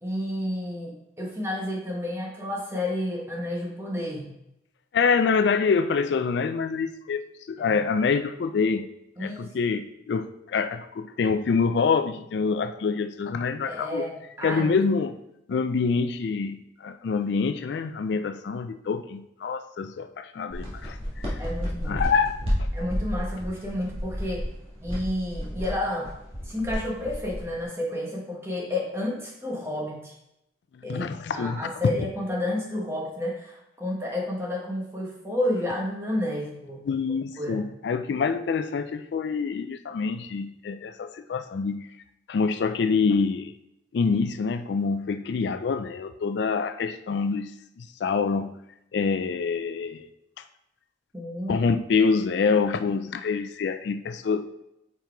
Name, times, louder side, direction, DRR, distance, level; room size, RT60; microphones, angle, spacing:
voice 1, 0.0-4.3 7.6-7.8 9.2-9.5 13.6-14.8 21.4-22.1 22.7-24.5 24.8-26.1 26.4-30.1 30.8-36.8 37.4-37.7 51.1-51.6, left 1 dB, 15° right, -3 dB, 1.3 m, -31 dB
voice 2, 4.9-8.9 9.2-14.1 14.4-15.2 15.5-21.4 21.9-22.7 30.9-31.7 36.9-41.9 42.3-43.5 43.9-47.5 47.8-48.6 48.9-50.1 51.5-54.5, left 5 dB, 70° left, 10 dB, 0.3 m, -26 dB
sound 1, 20.5-27.6, equal, 30° right, 1.8 m, -31 dB
5.3 x 4.6 x 4.5 m, 0.85 s
head